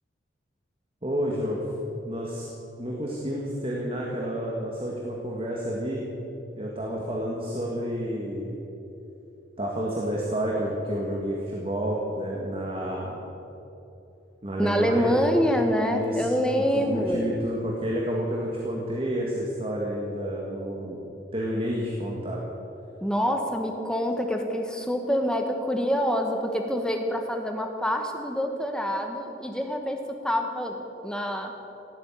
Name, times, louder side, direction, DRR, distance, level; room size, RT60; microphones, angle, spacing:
voice 1, 1.0-1.7 2.1-2.5 2.8-6.0 6.6-8.6 9.6-13.2 14.4-15.1 15.9-16.3 16.5-21.0 21.3-22.4, equal, 30° right, -2 dB, 1.9 m, -30 dB
voice 2, 14.6-17.3 23.0-30.8 31.0-31.5, equal, 5° left, 4 dB, 1.2 m, -26 dB
17.5 x 9.0 x 9.2 m, 2.9 s
head